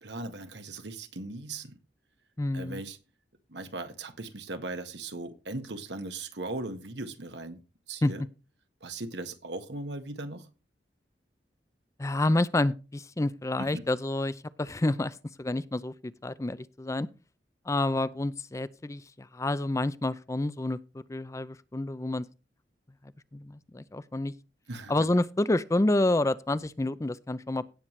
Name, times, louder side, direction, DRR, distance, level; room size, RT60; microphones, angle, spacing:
voice 1, 0.0-1.8 2.5-3.0 3.5-7.6 7.9-8.3 8.8-10.5 13.6-13.8 24.7-25.1, right 2 dB, 75° right, 1.6 m, -38 dB
voice 2, 2.4-2.8 8.0-8.1 12.0-15.9 16.2-17.1 17.7-22.3 23.3-24.3 24.9-27.6, left 2 dB, 15° left, 0.4 m, -28 dB
17.0 x 7.5 x 3.2 m
head